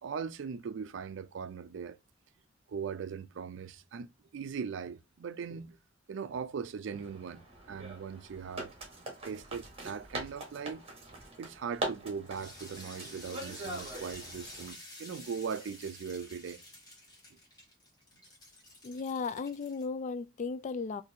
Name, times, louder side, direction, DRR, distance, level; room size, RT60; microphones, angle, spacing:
voice 1, 0.0-2.0 2.7-4.1 4.3-5.8 6.1-8.7 9.2-10.8 11.4-16.6 17.3-17.4, right 6 dB, 70° right, 0.4 m, -39 dB
sound 1, 6.9-14.7, right 2 dB, 30° right, 1.2 m, -43 dB
sound 2, 12.3-19.9, left 1 dB, 20° left, 1.7 m, -50 dB
voice 2, 18.8-21.0, left 4 dB, 40° left, 0.3 m, -35 dB
4.0 x 2.7 x 2.7 m
head